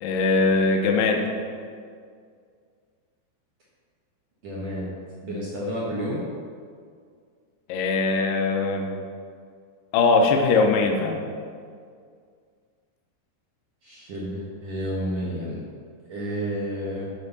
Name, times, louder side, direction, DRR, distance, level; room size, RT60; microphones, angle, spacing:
voice 1, 0.0-1.2 7.7-8.9 9.9-11.2, left 3 dB, 90° left, 3 dB, 1.9 m, -21 dB
voice 2, 4.4-4.9 5.2-6.2 13.8-15.6 16.1-17.1, equal, 65° right, -6 dB, 1.6 m, -30 dB
10.0 x 4.5 x 6.7 m, 2.1 s
omnidirectional pair, 5.0 m